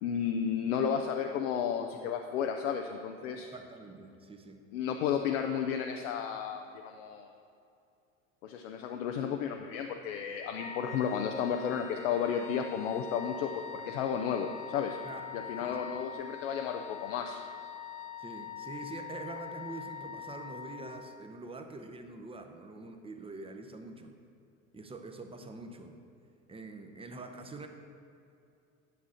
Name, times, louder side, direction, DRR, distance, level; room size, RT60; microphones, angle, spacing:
voice 1, 0.0-3.5 4.7-7.3 8.4-15.0 15.3-17.4, left 7 dB, 85° left, 4 dB, 0.6 m, -33 dB
voice 2, 3.3-4.6 15.0-15.3 15.6-15.8 18.2-24.2 24.7-26.0 26.5-27.7, right 3 dB, 15° right, 5 dB, 0.8 m, -45 dB
Wind instrument woodwind instrument, 10.5-21.3, left 9 dB, 20° left, 0.4 m, -44 dB
10.0 x 6.1 x 4.2 m, 2.5 s
hypercardioid pair, 90°, 38 cm